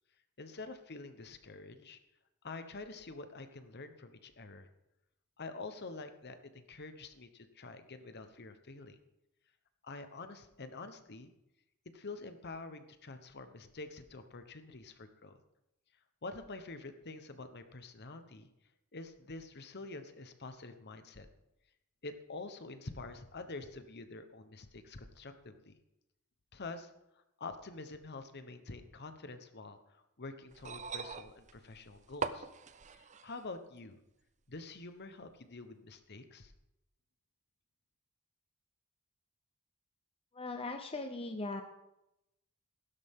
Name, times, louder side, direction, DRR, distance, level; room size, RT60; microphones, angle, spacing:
voice 1, 0.4-2.0 2.4-4.7 5.4-9.0 9.8-11.3 11.9-15.4 16.2-18.5 18.9-21.3 22.0-25.8 26.5-26.9 27.4-32.5 32.9-34.0 34.5-36.5, left 3 dB, 50° left, 9 dB, 1.0 m, -47 dB
sound 1, 30.5-33.5 34.6-34.7, right 5 dB, 35° right, 0.5 m, -42 dB
voice 2, 40.3-41.6, left 3 dB, 25° left, 6 dB, 0.7 m, -39 dB
15.5 x 12.0 x 3.7 m, 0.89 s
head